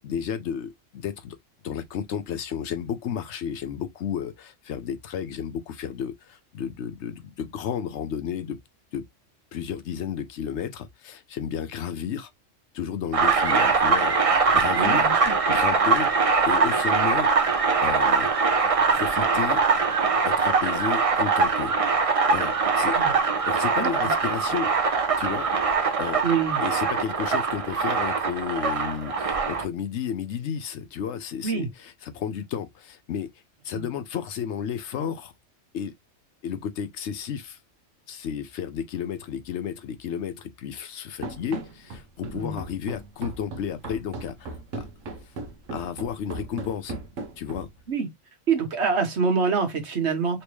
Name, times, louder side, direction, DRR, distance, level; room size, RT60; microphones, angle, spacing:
voice 1, 0.0-1.4 1.6-8.6 8.9-9.1 9.5-12.3 12.7-15.1 15.5-16.1 16.5-17.3 17.8-18.3 18.9-19.6 20.2-21.7 22.3-23.0 23.4-24.7 25.2-25.5 26.0-26.2 26.6-33.3 33.6-35.3 35.7-35.9 36.4-37.6 38.1-44.9 45.2-45.3 45.7-47.0 47.4-47.7, left 8 dB, 70° left, 0.8 m, -32 dB
sound 1, 13.1-29.6, right 4 dB, 40° right, 0.5 m, -22 dB
voice 2, 14.7-15.3 22.9-23.1 23.8-24.1 26.2-26.6 31.4-31.7 33.7-33.8 42.3-42.6 47.9-48.1 48.5-50.4, right 5 dB, 65° right, 1.3 m, -26 dB
Run, 41.2-47.8, right 2 dB, 90° right, 1.2 m, -37 dB
3.3 x 3.0 x 3.0 m
omnidirectional pair, 1.3 m